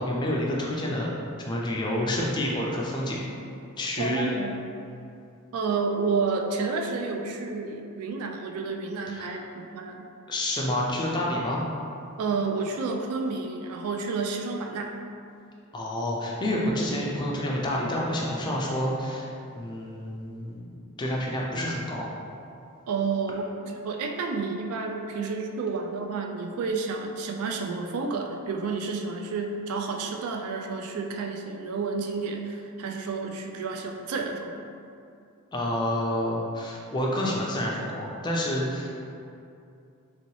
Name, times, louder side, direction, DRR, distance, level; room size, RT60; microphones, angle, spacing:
voice 1, 0.0-3.3 3.8-4.4 9.1-9.4 10.3-11.7 15.7-19.3 19.5-22.1 35.5-39.0, left 1 dB, 20° left, -3 dB, 0.3 m, -29 dB
voice 2, 4.0-4.5 5.5-10.1 12.2-15.0 22.9-34.7, right 4 dB, 75° right, 3 dB, 0.3 m, -30 dB
3.0 x 2.8 x 3.0 m, 2.6 s
head